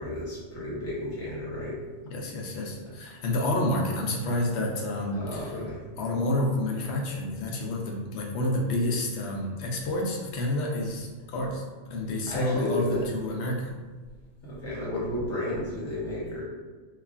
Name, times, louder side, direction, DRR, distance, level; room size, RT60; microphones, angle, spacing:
voice 1, 0.0-1.8 5.1-5.8 12.3-13.0 14.4-16.4, left 1 dB, 15° left, -8 dB, 0.7 m, -32 dB
voice 2, 2.1-5.5 6.0-13.7, left 1 dB, 70° left, -1 dB, 0.8 m, -29 dB
3.1 x 2.3 x 2.3 m, 1.4 s
omnidirectional pair, 1.2 m